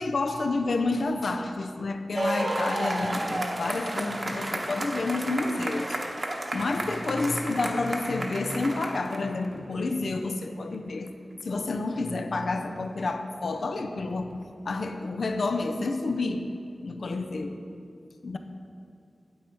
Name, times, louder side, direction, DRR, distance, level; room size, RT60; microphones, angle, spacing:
voice 1, 0.0-6.0 6.5-11.1 11.4-14.4 14.7-16.5 16.8-17.6 18.2-18.4, left 3 dB, 75° left, 7 dB, 0.5 m, -29 dB
sound 1, 2.1-9.5 10.4-10.5, right 1 dB, 40° right, 0.9 m, -32 dB
9.6 x 8.0 x 4.4 m, 2.5 s
wide cardioid pair, 105°, 0 cm